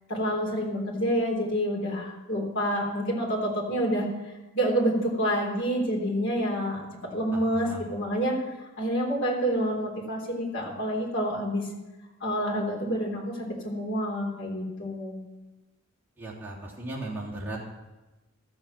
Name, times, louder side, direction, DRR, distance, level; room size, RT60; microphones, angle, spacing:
voice 1, 0.1-4.1 4.5-6.8 7.1-8.4 8.8-11.7 12.2-15.2, equal, 60° left, -1 dB, 3.6 m, -28 dB
voice 2, 7.3-7.8 16.2-17.6, right 2 dB, 10° right, -7 dB, 3.2 m, -37 dB
13.0 x 7.3 x 7.4 m, 1.1 s
head